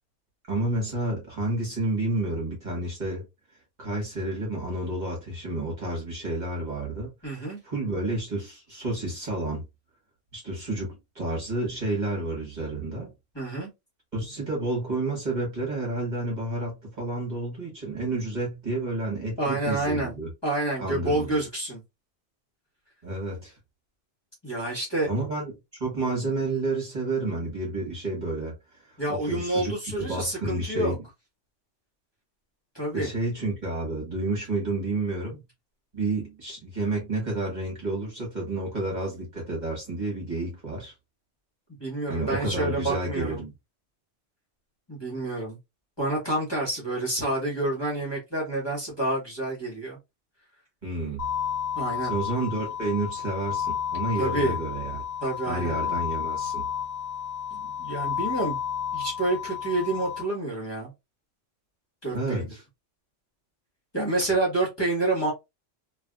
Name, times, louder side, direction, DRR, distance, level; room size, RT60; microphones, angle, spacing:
voice 1, 0.5-3.2 3.8-7.1 7.4-9.6 10.3-13.1 14.1-20.3 20.8-21.3 23.0-23.5 25.1-25.5 25.8-28.5 29.1-31.0 32.9-35.4 35.9-40.9 42.1-43.5 50.8-51.3 52.0-55.0 55.4-56.6 62.1-62.6, right 2 dB, 40° right, 1.4 m, -30 dB
voice 2, 7.2-7.6 13.3-13.7 19.4-20.1 20.4-21.8 24.4-25.1 29.0-30.9 32.7-33.1 41.8-43.4 44.9-45.6 46.0-50.0 51.7-52.1 54.2-54.5 55.2-55.8 57.5-58.6 58.9-60.9 62.0-62.5 63.9-65.3, right 2 dB, 20° left, 1.3 m, -28 dB
sound 1, 51.2-60.2, left 9 dB, 60° left, 0.9 m, -31 dB
3.3 x 2.6 x 2.3 m
omnidirectional pair, 1.2 m